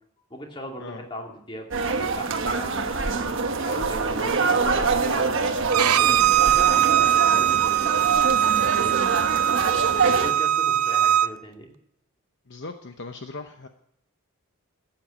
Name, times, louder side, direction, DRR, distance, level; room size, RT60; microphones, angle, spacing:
voice 1, 0.3-3.2 3.6-5.4 6.0-9.3 9.7-11.7, equal, 20° left, 1 dB, 2.5 m, -39 dB
sound 1, 1.7-10.3, right 4 dB, 55° right, 1.3 m, -25 dB
voice 2, 5.3-6.3 7.0-7.1 10.0-10.2 12.5-13.7, left 3 dB, 50° left, 6 dB, 0.9 m, -40 dB
Bowed string instrument, 5.7-11.3, right 11 dB, 85° right, 0.5 m, -21 dB
14.0 x 8.9 x 8.4 m, 0.71 s
head